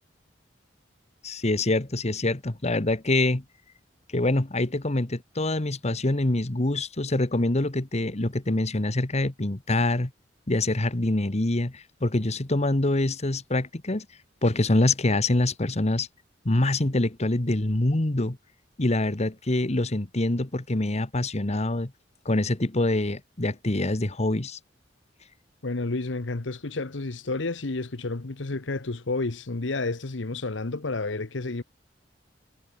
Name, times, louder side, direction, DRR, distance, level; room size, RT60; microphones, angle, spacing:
voice 1, 1.2-3.4 4.1-10.1 10.5-14.0 14.4-16.1 16.4-18.4 18.8-21.9 22.2-24.6, left 2 dB, 35° left, 1.4 m, -25 dB
voice 2, 25.6-31.6, left 3 dB, 75° left, 1.1 m, -30 dB
head